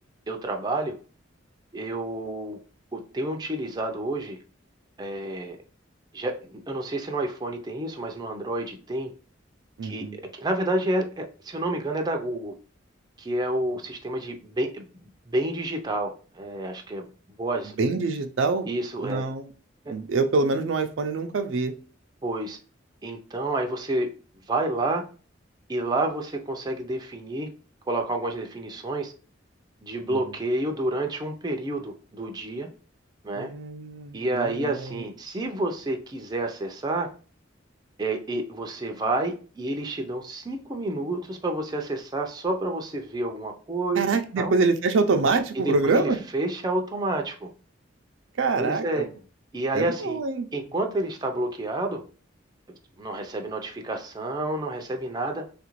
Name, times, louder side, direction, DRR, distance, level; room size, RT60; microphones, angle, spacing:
voice 1, 0.3-1.0 1.7-2.6 2.9-4.4 5.0-5.6 6.1-9.1 9.8-12.5 13.2-17.1 17.4-17.8 18.7-19.3 19.9-20.0 22.2-22.6 23.0-24.1 24.5-25.0 25.7-27.5 27.9-29.1 29.8-32.7 33.2-33.5 34.1-37.1 38.0-44.0 44.4-44.5 45.6-47.5 48.6-49.1 49.5-50.2 50.5-52.0 53.0-55.5, right 2 dB, 20° right, 3 dB, 0.4 m, -29 dB
voice 2, 9.8-10.2 17.8-18.7 19.0-19.5 19.9-21.7 30.1-30.2 33.3-35.0 43.9-46.2 48.4-49.0 49.7-50.5, right 3 dB, 80° right, 6 dB, 0.4 m, -25 dB
3.4 x 2.4 x 3.0 m, 0.37 s
head